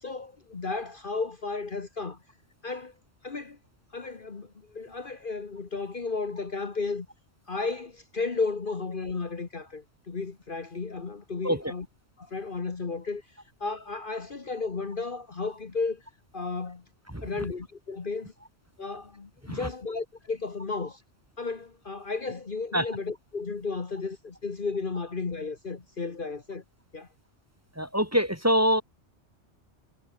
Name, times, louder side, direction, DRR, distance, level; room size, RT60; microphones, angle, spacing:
voice 1, 0.0-2.2 2.6-2.9 3.2-3.6 3.9-7.1 7.5-11.8 12.2-13.2 13.6-16.0 16.3-16.8 17.2-18.3 18.8-21.0 21.4-26.6 26.9-27.1, left 4 dB, 45° left, 1.6 m, -33 dB
voice 2, 17.1-17.4 19.4-19.7 22.7-22.9 27.8-28.8, equal, 10° right, 3.0 m, -25 dB
omnidirectional pair, 1.2 m